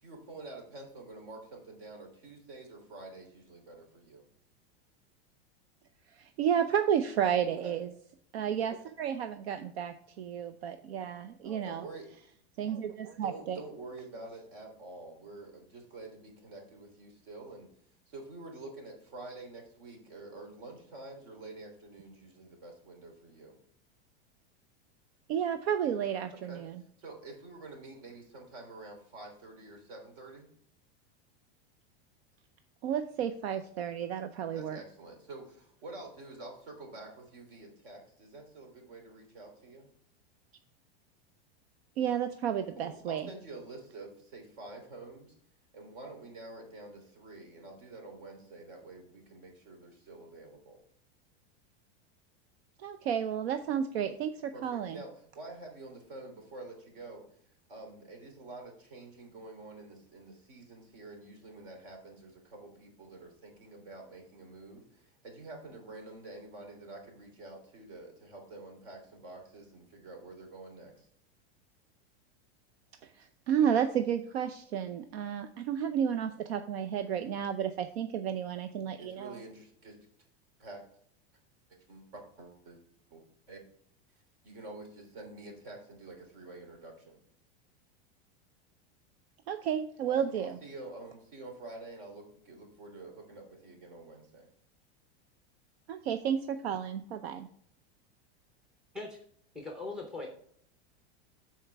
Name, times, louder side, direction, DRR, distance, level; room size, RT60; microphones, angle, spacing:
voice 1, 0.0-4.2 7.6-7.8 11.4-12.2 13.2-17.7 18.1-23.6 26.5-26.6 27.0-30.5 34.5-39.9 42.7-45.4 45.7-50.8 54.5-57.2 57.7-71.1 79.0-80.0 80.6-80.8 81.7-82.8 83.1-83.2 83.5-83.6 84.4-87.2 90.0-94.5, right 2 dB, 55° right, 2 dB, 3.2 m, -48 dB
voice 2, 6.2-7.9 8.3-11.9 12.6-13.6 25.3-26.8 32.8-34.8 42.0-43.3 52.8-55.0 73.2-79.4 89.5-90.6 95.9-97.5, right 8 dB, 75° right, 9 dB, 0.7 m, -32 dB
voice 3, 99.5-100.3, left 3 dB, ahead, 2 dB, 0.6 m, -40 dB
13.0 x 4.5 x 3.4 m, 0.63 s
supercardioid pair, 180°, 32 cm